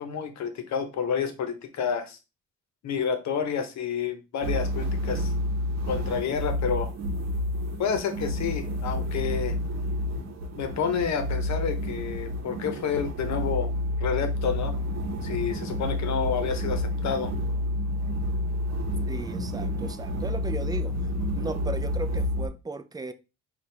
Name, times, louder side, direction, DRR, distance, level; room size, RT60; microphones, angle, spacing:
voice 1, 0.0-2.2 2.8-5.3 5.8-6.9 7.8-9.6 10.5-13.7 14.0-14.7 15.2-17.3, left 7 dB, 65° left, 0.9 m, -29 dB
sound 1, 4.4-22.5, left 1 dB, 60° right, 0.9 m, -29 dB
voice 2, 19.1-21.0 21.3-23.1, right 3 dB, 15° right, 0.4 m, -36 dB
4.2 x 2.4 x 3.3 m
cardioid pair, 90°, 30 cm